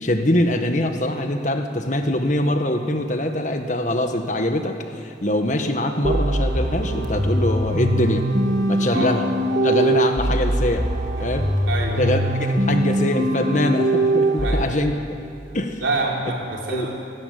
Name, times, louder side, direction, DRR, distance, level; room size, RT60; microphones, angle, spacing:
voice 1, 0.0-8.3 8.7-9.2 9.6-10.9 11.2-11.5 12.0-14.9 15.5-15.8 16.7-16.9, left 1 dB, 40° left, 5 dB, 1.6 m, -23 dB
sound 1, 6.0-14.6, right 1 dB, 45° right, 2.0 m, -22 dB
voice 2, 11.6-12.0 14.4-14.7 15.8-16.9, right 3 dB, 85° right, -2 dB, 4.3 m, -26 dB
25.5 x 12.0 x 9.4 m, 2.5 s
head